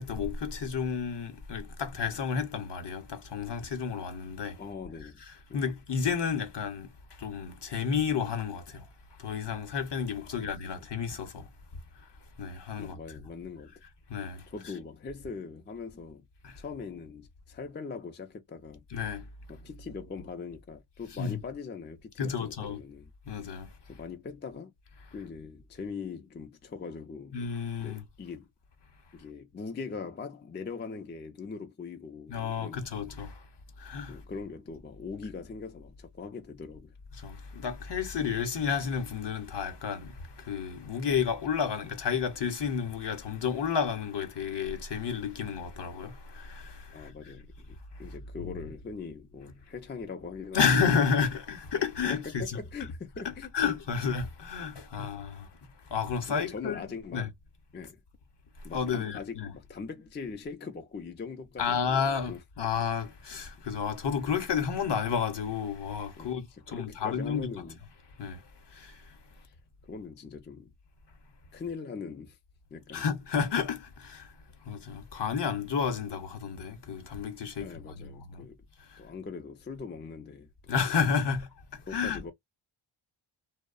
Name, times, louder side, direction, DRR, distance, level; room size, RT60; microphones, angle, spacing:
voice 1, 0.0-4.6 5.5-6.9 7.2-8.9 9.2-11.5 12.4-13.0 14.1-14.5 16.4-16.6 18.9-19.3 21.2-21.4 22.2-22.8 23.3-23.7 27.3-28.0 32.3-33.4 33.8-34.2 37.2-47.3 48.4-48.7 50.5-52.6 53.2-55.5 55.9-57.3 58.7-59.5 61.6-67.5 68.2-68.4 68.7-69.0 72.9-74.3 74.6-78.5 78.9-79.0 80.7-82.3, left 6 dB, 55° left, 0.7 m, -31 dB
voice 2, 4.6-5.2 5.5-5.7 10.2-10.6 12.8-13.7 14.5-16.3 16.6-18.8 19.5-23.1 23.9-24.7 25.1-27.4 27.8-28.5 29.1-33.2 34.1-36.9 46.9-50.7 52.1-53.7 55.0-55.2 56.3-57.3 57.7-58.0 58.6-62.4 64.1-64.2 66.2-66.4 66.7-67.8 69.4-69.5 69.8-70.7 71.5-72.4 72.7-73.1 77.6-78.6 79.0-80.8 81.8-82.3, left 5 dB, 25° left, 0.4 m, -41 dB
2.7 x 2.0 x 2.3 m
wide cardioid pair, 115°, 50 cm